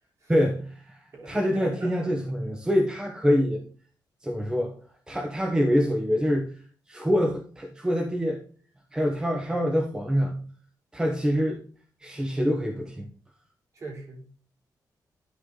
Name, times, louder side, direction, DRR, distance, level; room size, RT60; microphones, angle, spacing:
voice 1, 0.3-3.6 4.2-4.7 5.1-6.5 6.9-8.4 8.9-10.4 10.9-11.6 12.0-13.1, equal, 10° right, 1 dB, 1.1 m, -25 dB
voice 2, 1.1-2.1 13.7-14.3, right 2 dB, 40° right, -1 dB, 3.4 m, -41 dB
11.5 x 4.7 x 3.8 m, 0.43 s
wide cardioid pair, 165°, 7 cm